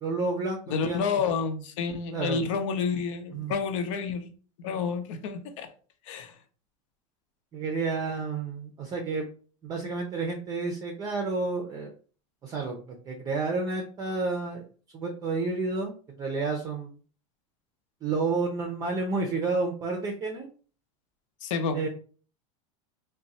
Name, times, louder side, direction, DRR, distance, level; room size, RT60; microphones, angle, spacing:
voice 1, 0.0-1.0 2.1-2.4 3.3-3.5 4.7-4.8 7.5-9.2 9.6-11.9 12.4-14.6 14.9-16.9 18.0-20.5 21.7-21.9, right 3 dB, 20° right, 0.6 m, -30 dB
voice 2, 0.7-4.3 4.6-5.7 6.1-6.3 21.4-21.8, left 5 dB, 70° left, 0.8 m, -29 dB
3.6 x 2.2 x 4.1 m
supercardioid pair, 155°, 17 cm